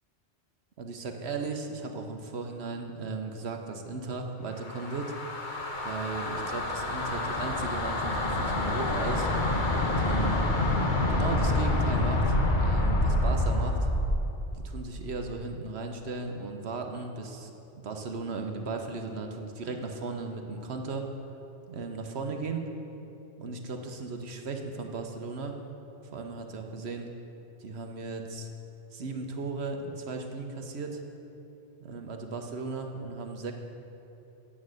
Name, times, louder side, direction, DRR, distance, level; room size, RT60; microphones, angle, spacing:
voice 1, 0.8-5.1 5.8-9.3 10.0-10.4 11.1-13.8 14.6-17.5 17.8-21.1 21.7-22.7 23.4-25.6 26.1-27.1 27.6-28.5 28.9-31.0 31.8-33.5, right 4 dB, 65° right, 4 dB, 1.1 m, -36 dB
sound 1, 4.5-14.3, left 1 dB, 45° left, 1.2 m, -27 dB
9.5 x 8.6 x 6.4 m, 2.9 s
omnidirectional pair, 1.2 m